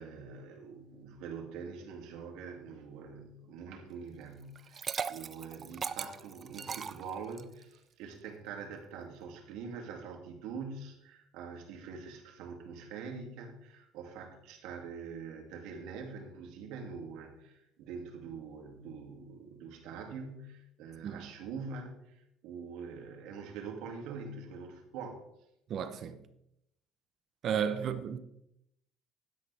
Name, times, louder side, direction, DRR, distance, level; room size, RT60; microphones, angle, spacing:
voice 1, 0.0-25.2 27.8-27.9, right 5 dB, 80° right, 2.7 m, -44 dB
Liquid, 4.6-7.6, right 6 dB, 35° right, 0.5 m, -38 dB
voice 2, 25.7-26.2 27.4-28.2, right 8 dB, 50° right, 0.9 m, -33 dB
12.0 x 10.5 x 3.5 m
cardioid pair, 120°, 0 cm